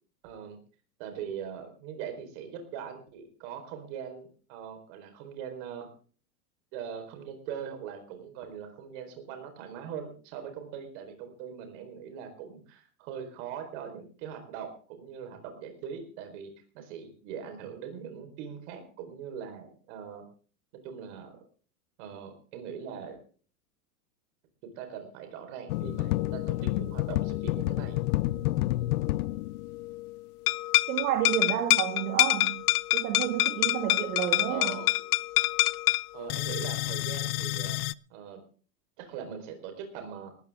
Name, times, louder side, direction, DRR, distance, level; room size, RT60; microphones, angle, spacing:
voice 1, 0.2-0.6 1.0-5.9 6.7-20.2 20.8-21.4 22.0-23.2 24.8-28.0 34.5-35.2 36.1-37.8 38.1-38.4 39.0-40.3, right 8 dB, 50° right, 4.4 m, -41 dB
sound 1, 25.7-30.2 30.5-37.9, left 18 dB, 75° left, 0.6 m, -28 dB
voice 2, 30.9-32.6 32.9-34.8, right 12 dB, 75° right, 2.2 m, -30 dB
18.5 x 14.0 x 3.6 m
supercardioid pair, 165°, 46 cm